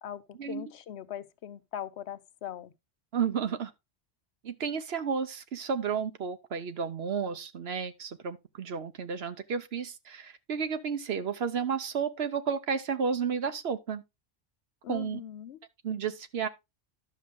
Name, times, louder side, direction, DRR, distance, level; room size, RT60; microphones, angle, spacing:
voice 1, 0.0-2.7 14.8-15.6, left 10 dB, 75° left, 1.0 m, -41 dB
voice 2, 3.1-3.7 4.4-14.0 14.9-15.2 15.8-16.5, right 6 dB, 70° right, 1.0 m, -32 dB
11.0 x 6.5 x 3.6 m
omnidirectional pair, 1.1 m